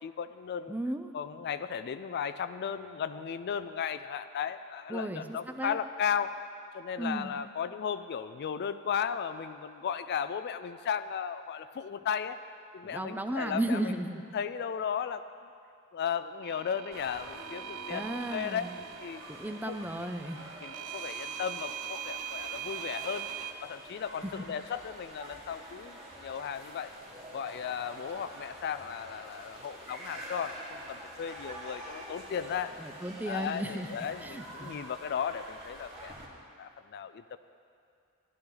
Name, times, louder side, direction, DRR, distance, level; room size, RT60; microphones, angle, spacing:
voice 1, 0.0-0.7 1.1-6.4 6.7-12.4 12.7-13.9 14.3-15.2 15.9-18.6 19.0-19.2 19.6-20.1 20.6-23.3 23.6-26.9 27.3-32.8 33.3-36.2 36.6-37.4, left 7 dB, 50° left, 12 dB, 0.3 m, -35 dB
voice 2, 0.7-1.1 4.9-5.8 7.0-7.3 12.8-14.2 17.9-18.8 19.3-20.4 24.2-24.3 32.8-33.9 34.2-34.7, right 1 dB, 10° right, 6 dB, 0.5 m, -34 dB
sound 1, 16.4-23.5, right 9 dB, 70° right, 0.4 m, -41 dB
sound 2, 16.9-36.3, right 1 dB, 30° right, 2.0 m, -47 dB
14.5 x 11.5 x 3.9 m, 2.4 s
head